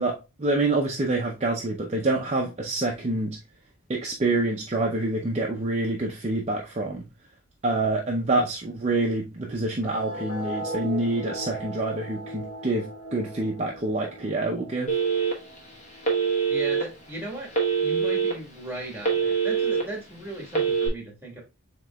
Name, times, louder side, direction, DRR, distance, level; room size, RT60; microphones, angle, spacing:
voice 1, 0.0-3.4 3.9-7.0 7.6-14.9, right 2 dB, 30° right, 0.5 m, -27 dB
sound 1, 9.8-16.8, equal, 55° left, 1.8 m, -38 dB
Telephone, 14.9-15.6 16.0-16.8 17.5-18.3 18.7-19.8 20.5-20.9, right 6 dB, 30° left, 1.1 m, -24 dB
voice 2, 16.5-17.5 17.8-21.4, right 1 dB, 10° right, 1.5 m, -37 dB
7.5 x 2.9 x 2.2 m
head